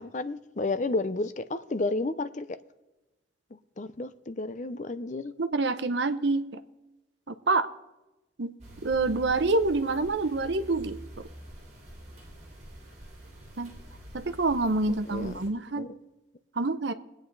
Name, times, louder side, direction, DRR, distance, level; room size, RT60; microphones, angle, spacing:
voice 1, 0.0-2.6 3.5-5.3 14.9-15.4 15.7-16.0, left 2 dB, 40° left, 0.6 m, -32 dB
voice 2, 5.4-6.6 7.3-7.7 8.4-11.3 13.6-13.8 14.1-15.9 16.6-16.9, right 3 dB, 65° right, 0.8 m, -27 dB
sound 1, 8.6-15.5, right 1 dB, 35° right, 2.6 m, -46 dB
21.5 x 9.0 x 4.0 m
head